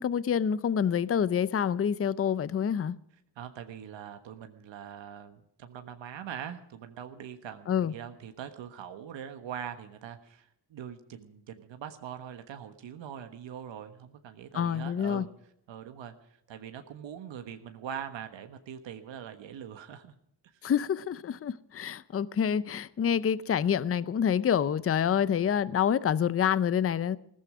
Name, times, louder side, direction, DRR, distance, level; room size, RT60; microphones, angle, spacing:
voice 1, 0.0-2.9 7.7-7.9 14.5-15.3 20.6-27.2, left 8 dB, 30° left, 0.6 m, -27 dB
voice 2, 3.3-15.3 15.7-20.1 20.6-20.7, right 9 dB, 80° right, 1.4 m, -42 dB
16.0 x 14.0 x 5.0 m
cardioid pair, 110°, 44 cm